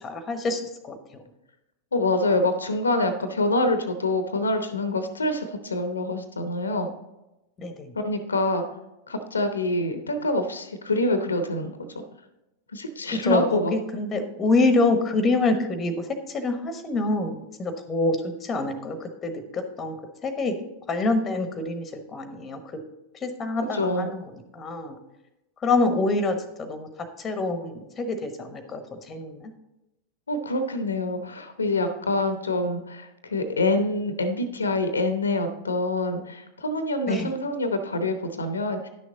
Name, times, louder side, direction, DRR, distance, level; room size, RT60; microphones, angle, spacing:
voice 1, 0.0-1.0 7.6-7.9 13.2-15.9 16.3-20.0 20.2-20.6 20.9-22.6 23.2-25.0 25.6-26.9 27.2-28.8 29.1-29.5 37.1-37.3, left 3 dB, 20° left, 9 dB, 1.1 m, -26 dB
voice 2, 1.9-6.9 7.9-8.6 9.1-12.0 12.7-13.7 23.7-24.1 30.3-38.9, left 2 dB, 75° left, 9 dB, 0.9 m, -26 dB
10.5 x 6.4 x 3.9 m, 0.95 s
figure-of-eight pair, 90°, 0 cm